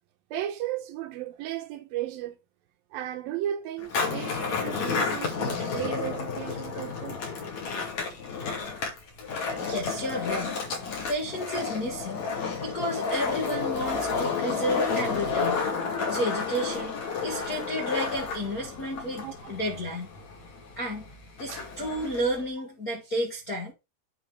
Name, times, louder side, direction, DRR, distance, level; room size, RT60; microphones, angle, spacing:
voice 1, 0.3-2.4 2.9-7.2 9.5-9.6 17.4-17.6 19.2-19.5 21.5-21.6, right 12 dB, 70° right, 2.4 m, -35 dB
Skateboard, 3.8-22.4, left 5 dB, 45° left, 3.3 m, -31 dB
voice 2, 9.6-10.5 11.1-12.2 12.6-15.6 16.1-20.1 20.8-21.1 21.4-23.7, equal, 90° left, 0.8 m, -32 dB
8.6 x 4.5 x 4.8 m
omnidirectional pair, 4.9 m